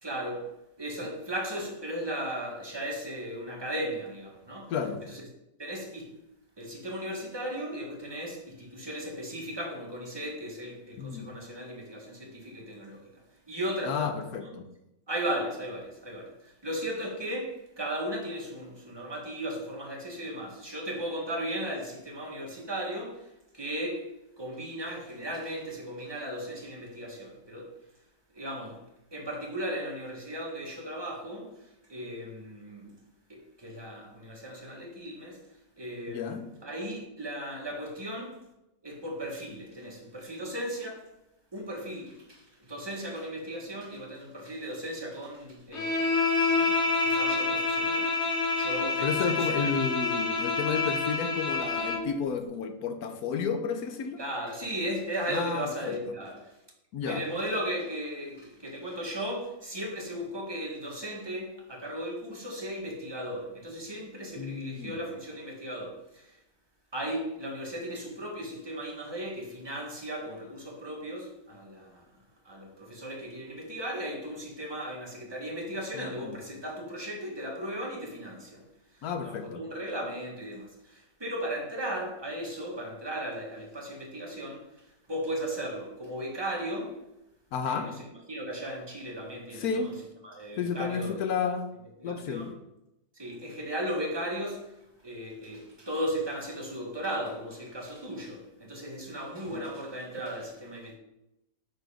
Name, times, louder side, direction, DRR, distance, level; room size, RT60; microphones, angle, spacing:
voice 1, 0.0-0.5 0.8-4.7 5.1-5.2 5.6-6.1 6.6-13.1 13.5-14.5 15.1-24.1 24.4-27.7 28.3-28.8 29.1-33.0 33.3-35.4 35.8-38.4 38.8-41.1 41.5-49.7 54.2-56.5 57.0-66.4 66.9-72.0 72.4-78.7 79.0-87.0 87.6-88.0 88.3-89.9 90.2-91.2 92.0-92.5 93.1-94.8 95.0-101.0, equal, 15° right, 1.5 m, -36 dB
voice 2, 4.7-5.0 11.0-11.3 13.8-14.5 36.1-36.4 49.0-54.2 55.3-56.1 56.9-57.2 64.4-65.0 76.0-76.4 79.0-79.6 87.5-87.9 89.5-89.9 90.6-91.7 92.0-92.5 99.5-99.6, left 6 dB, 90° left, 1.4 m, -31 dB
Bowed string instrument, 45.7-52.1, left 3 dB, 50° left, 1.4 m, -27 dB
6.2 x 4.9 x 4.9 m
omnidirectional pair, 1.5 m